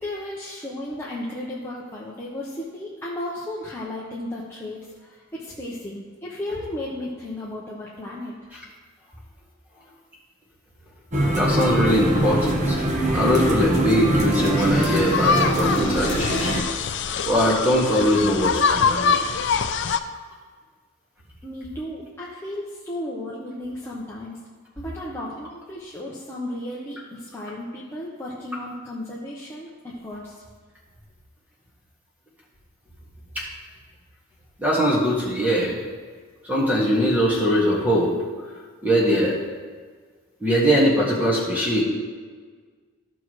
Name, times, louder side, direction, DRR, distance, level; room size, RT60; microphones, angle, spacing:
voice 1, 0.0-8.3 21.4-24.4 24.8-30.3, left 1 dB, 10° left, -7 dB, 0.9 m, -34 dB
sound 1, 11.1-16.6, right 1 dB, 35° right, 1.1 m, -23 dB
voice 2, 11.4-16.5 17.3-19.1 33.4-33.5 34.6-35.8 36.4-38.1 38.8-39.4 40.4-41.8, equal, 10° right, -5 dB, 1.8 m, -21 dB
sound 2, 14.6-20.0, left 5 dB, 55° left, 0.4 m, -24 dB
14.0 x 6.0 x 3.2 m, 1.6 s
head